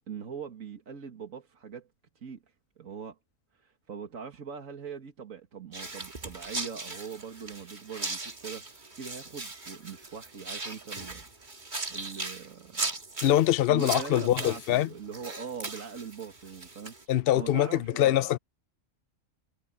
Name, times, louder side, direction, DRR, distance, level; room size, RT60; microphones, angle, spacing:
voice 1, 0.0-1.9 2.2-2.4 2.8-3.2 3.5-11.3 11.5-12.9 13.7-17.0 17.3-18.2, right 6 dB, 80° right, 2.2 m, -42 dB
sound 1, 5.7-17.0, right 3 dB, 35° right, 2.1 m, -38 dB
voice 2, 13.2-14.9 17.1-18.4, left 12 dB, 55° left, 0.7 m, -24 dB
omnidirectional pair, 1.4 m